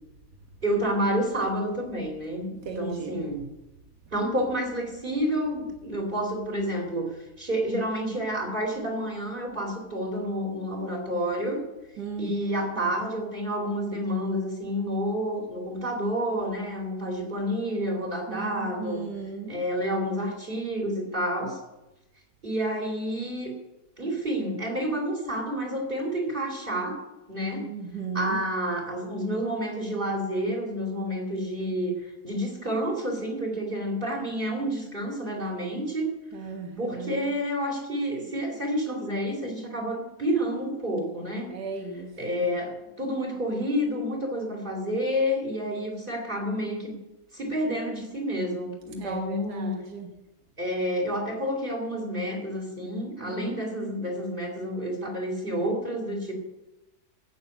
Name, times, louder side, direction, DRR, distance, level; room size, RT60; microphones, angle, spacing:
voice 1, 0.6-2.4 2.7-3.5 4.1-11.6 12.2-19.1 19.5-21.6 22.4-23.5 24.0-27.0 27.3-27.7 28.1-36.1 36.8-41.5 42.2-47.0 47.3-49.8 50.6-56.3, equal, 30° right, 1 dB, 2.6 m, -29 dB
voice 2, 2.7-3.3 12.0-12.6 18.3-19.5 27.6-28.4 36.3-37.3 41.5-42.1 42.4-42.5 49.0-50.1 53.3-53.9, right 4 dB, 80° right, 3 dB, 1.9 m, -36 dB
15.5 x 6.6 x 8.1 m, 0.99 s
omnidirectional pair, 1.7 m